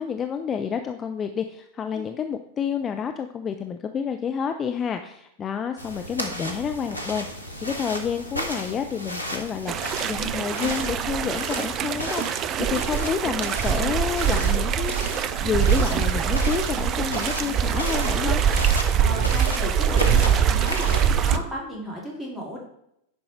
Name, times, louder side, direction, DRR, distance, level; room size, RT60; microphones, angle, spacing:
voice 1, 0.0-14.9 15.4-18.4, left 7 dB, 25° left, 6 dB, 0.6 m, -29 dB
sound 1, 5.8-21.4, equal, 85° left, 1.1 m, -34 dB
sound 2, 9.7-21.4, right 8 dB, 30° right, 0.4 m, -23 dB
voice 2, 18.8-22.6, equal, 10° right, -3 dB, 3.3 m, -34 dB
10.0 x 5.5 x 4.4 m, 0.77 s
figure-of-eight pair, 90°, 0 cm